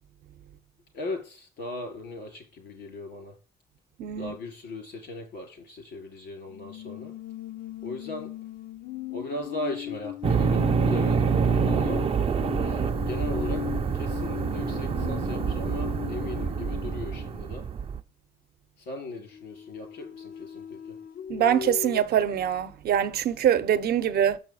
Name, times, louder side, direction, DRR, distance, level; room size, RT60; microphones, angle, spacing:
voice 1, 0.9-3.4 4.1-7.1 7.8-8.3 9.1-12.1 12.6-17.7 18.8-21.0, left 2 dB, 85° left, 3.9 m, -38 dB
voice 2, 4.0-4.4 21.3-24.4, right 9 dB, 65° right, 0.7 m, -24 dB
sound 1, 6.5-17.5 19.3-22.0, left 11 dB, 55° left, 0.5 m, -37 dB
sound 2, 10.2-18.0, right 7 dB, 35° right, 0.5 m, -27 dB
6.9 x 5.5 x 4.7 m
cardioid pair, 135°, 17 cm